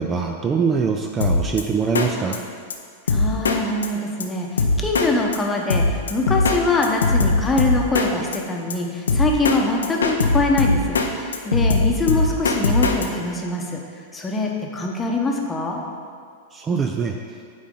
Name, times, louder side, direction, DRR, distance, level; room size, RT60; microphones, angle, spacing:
voice 1, 0.0-2.4 16.5-17.1, right 5 dB, 25° right, 3 dB, 0.4 m, -23 dB
Drum kit, 1.2-1.6 2.0-2.1 2.3-2.4 2.7-2.8 3.1-3.6 3.8-3.9 4.2-4.3 4.6-5.1 5.3-5.4 5.7-6.6 6.8-8.1 8.3-8.4 8.7-8.8 9.1-9.6 9.8-11.1 11.3-13.1, left 3 dB, 85° left, 0.6 m, -19 dB
voice 2, 3.1-13.8 14.1-15.8, left 2 dB, 15° left, 0 dB, 0.9 m, -23 dB
8.4 x 4.0 x 3.8 m, 2.1 s
hypercardioid pair, 105°, 0 cm